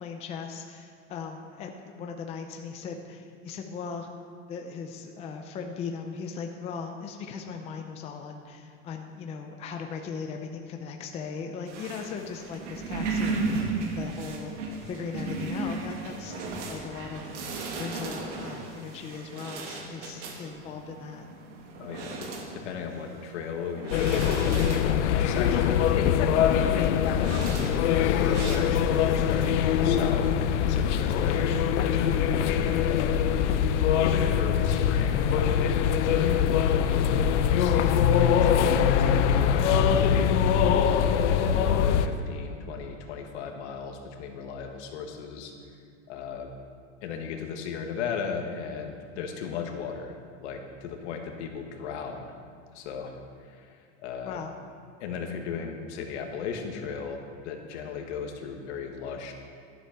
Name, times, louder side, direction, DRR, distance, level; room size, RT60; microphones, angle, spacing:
voice 1, 0.0-4.1 4.5-16.4 16.7-17.2 17.7-21.3 54.2-54.5, left 5 dB, 20° left, 3 dB, 0.5 m, -38 dB
sound 1, 11.7-28.6, right 3 dB, 90° right, 2.2 m, -36 dB
voice 2, 21.8-22.3 22.5-27.3 27.9-32.1 32.9-33.5 34.0-35.4 35.8-40.4 40.9-45.8 46.1-46.5 47.0-52.4 52.7-54.4 55.0-59.3, left 6 dB, 75° left, 3 dB, 1.7 m, -37 dB
sound 2, 23.9-42.1, left 8 dB, 90° left, 0.8 m, -23 dB
12.5 x 8.0 x 5.9 m, 2.1 s
supercardioid pair, 165°, 35 cm